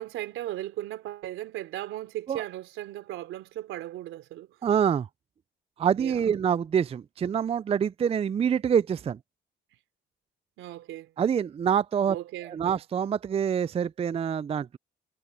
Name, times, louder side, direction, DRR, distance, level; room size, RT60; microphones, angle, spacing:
voice 1, 0.0-4.5 6.0-6.2 10.6-11.1 12.1-12.8, right 14 dB, 90° right, 3.9 m, -37 dB
voice 2, 4.6-5.1 5.8-9.2 11.2-12.2 12.4-14.8, right 8 dB, 30° right, 0.4 m, -26 dB
cardioid pair, 90°, 20 cm